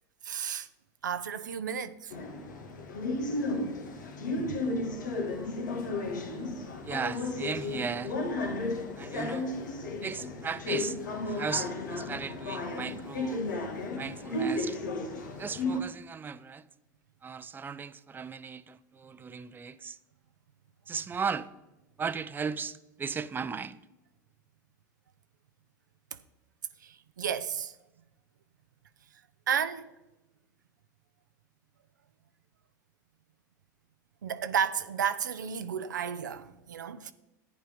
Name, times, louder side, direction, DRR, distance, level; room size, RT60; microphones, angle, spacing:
voice 1, 0.2-0.7 1.0-2.1 4.3-4.6 26.8-27.8 29.5-29.9 34.2-37.1, right 8 dB, 90° right, 0.6 m, -32 dB
sound 1, 2.1-15.8, left 2 dB, 85° left, 1.8 m, -34 dB
voice 2, 6.8-8.2 9.0-9.5 10.0-11.0 11.2-13.4 14.0-14.8 15.4-16.7 17.2-20.0 20.9-21.5 22.0-23.8, right 6 dB, 20° right, 0.6 m, -36 dB
11.5 x 9.3 x 5.1 m
hypercardioid pair, 85°, 10 cm